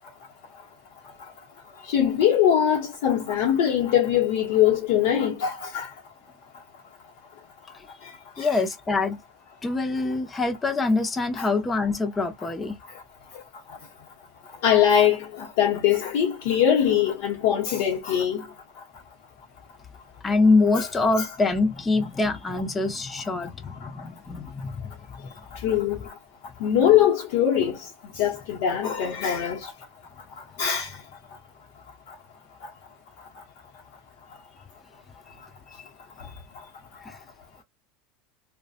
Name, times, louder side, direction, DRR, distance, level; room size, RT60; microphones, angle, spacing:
voice 1, 1.9-5.9 8.4-8.5 11.4-11.5 14.6-18.5 20.7-20.9 21.2-21.3 25.6-26.0 26.6-27.8 28.1-29.7 30.6-30.9, left 9 dB, 70° left, 0.7 m, -22 dB
voice 2, 8.4-9.2 9.6-12.8 20.2-24.9 25.2-25.3 37.1-37.2, left 3 dB, 10° left, 0.4 m, -24 dB
2.6 x 2.1 x 2.3 m
supercardioid pair, 155°, 0 cm